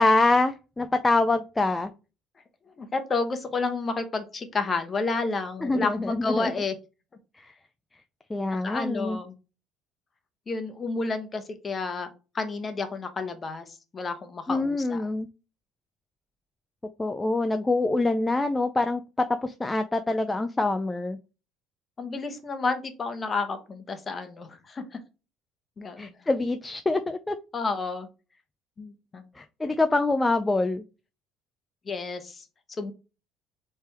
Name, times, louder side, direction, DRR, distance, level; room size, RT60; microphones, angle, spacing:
voice 1, 0.0-1.9 5.6-6.5 7.4-7.5 8.3-9.2 14.5-15.3 17.0-21.2 26.0-27.3 29.4-30.8, left 2 dB, 15° left, 8 dB, 0.4 m, -25 dB
voice 2, 2.8-6.8 8.5-9.3 10.5-12.1 12.3-13.7 13.9-15.0 22.0-24.8 25.8-26.2 27.5-28.1 28.8-29.2 31.9-32.4 32.8-32.9, left 3 dB, 30° left, 8 dB, 1.0 m, -30 dB
4.3 x 3.4 x 3.4 m, 0.30 s
cardioid pair, 110°, 0 cm